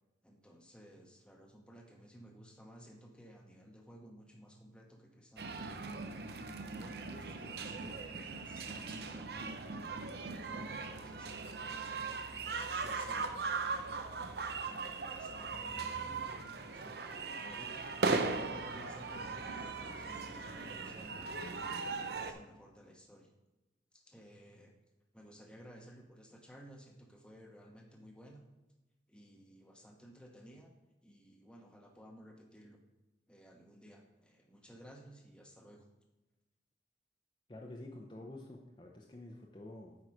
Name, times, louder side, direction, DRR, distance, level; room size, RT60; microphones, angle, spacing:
voice 1, 0.2-6.0 6.6-9.6 10.2-11.9 12.4-17.0 17.4-21.5 22.0-23.3 23.9-24.8 25.1-28.4 29.1-30.7 31.0-32.8 33.3-35.8, equal, 5° left, 1 dB, 1.0 m, -56 dB
sound 1, 5.4-22.3, right 4 dB, 60° right, 0.6 m, -39 dB
voice 2, 37.5-40.0, left 1 dB, 25° left, 0 dB, 0.6 m, -49 dB
8.7 x 4.8 x 4.9 m, 1.0 s
head